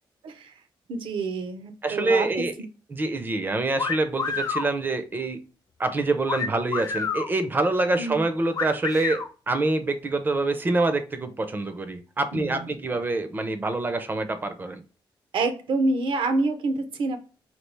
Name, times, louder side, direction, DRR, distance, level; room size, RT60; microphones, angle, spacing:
voice 1, 0.2-0.5 0.9-2.5 8.0-8.2 12.3-12.7 15.3-17.2, right 3 dB, 75° right, 8 dB, 0.8 m, -27 dB
voice 2, 1.8-2.5 2.9-5.4 5.8-14.8, right 2 dB, 25° right, 9 dB, 0.5 m, -26 dB
sound 1, 3.8-4.7 6.3-7.3 8.5-9.3, left 5 dB, 40° left, 0.6 m, -28 dB
4.4 x 2.4 x 3.2 m, 0.34 s
wide cardioid pair, 165°, 9 cm